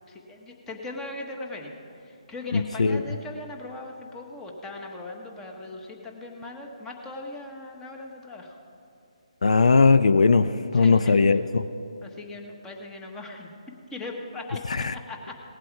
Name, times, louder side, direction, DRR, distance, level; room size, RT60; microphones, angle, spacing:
voice 1, 0.1-1.7 2.0-8.6 10.7-11.3 12.0-13.5 13.9-14.6 14.9-15.3, left 2 dB, 10° left, 2 dB, 1.2 m, -39 dB
voice 2, 2.5-3.0 9.4-11.6 14.8-14.9, left 4 dB, 70° left, 12 dB, 0.4 m, -19 dB
18.5 x 7.6 x 4.7 m, 2.8 s
figure-of-eight pair, 150°, 4 cm